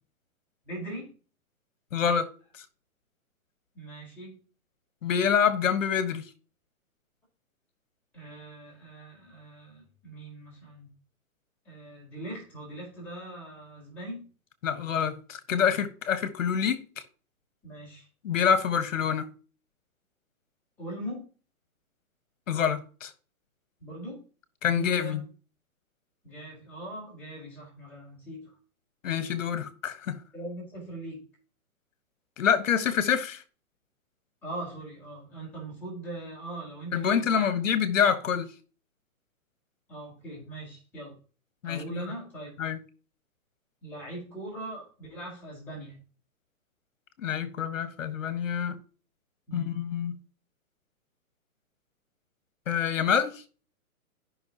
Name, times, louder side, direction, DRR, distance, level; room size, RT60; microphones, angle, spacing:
voice 1, 0.6-1.1 3.7-4.4 8.1-10.9 11.6-14.3 17.6-18.1 20.8-21.3 23.8-24.2 24.7-25.2 26.2-28.5 30.3-31.2 34.4-37.5 39.9-41.2 41.6-42.5 43.8-46.0 49.5-49.7, right 1 dB, 5° left, 4.2 m, -40 dB
voice 2, 1.9-2.3 5.0-6.3 14.6-16.8 18.2-19.3 22.5-23.1 24.6-25.2 29.0-30.2 32.4-33.4 36.9-38.5 41.6-42.0 42.6-42.8 47.2-48.8 49.5-50.2 52.7-53.4, left 7 dB, 60° left, 1.5 m, -26 dB
14.0 x 5.9 x 3.0 m
hypercardioid pair, 165°, 44 cm